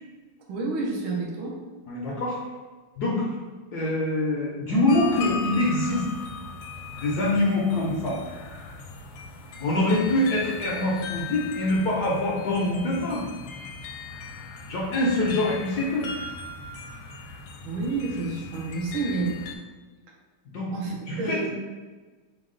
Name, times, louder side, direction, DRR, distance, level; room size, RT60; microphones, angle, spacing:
voice 1, 0.5-1.6 17.6-19.4 20.7-21.5, right 3 dB, 75° right, -2 dB, 1.7 m, -29 dB
voice 2, 1.9-2.4 3.0-3.3 3.7-6.0 6.9-8.2 9.6-13.2 14.7-16.1 20.5-20.7 21.1-21.5, left 1 dB, 65° left, -4 dB, 1.1 m, -24 dB
sound 1, 4.9-19.6, left 5 dB, 85° left, 1.5 m, -38 dB
5.3 x 2.3 x 3.7 m, 1.3 s
omnidirectional pair, 2.3 m